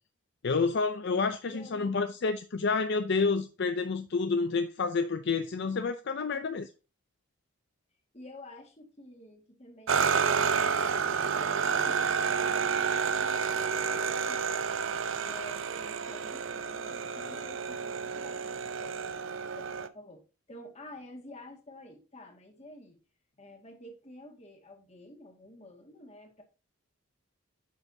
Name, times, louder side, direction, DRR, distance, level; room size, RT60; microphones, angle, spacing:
voice 1, 0.4-6.7, left 4 dB, 55° left, 0.5 m, -29 dB
voice 2, 1.5-2.0 6.2-6.5 8.1-14.5 15.2-20.2 20.5-23.0 23.4-26.4, left 1 dB, 30° left, 1.9 m, -50 dB
sound 1, 9.9-19.9, right 6 dB, 65° right, 0.6 m, -30 dB
9.2 x 6.5 x 2.7 m
head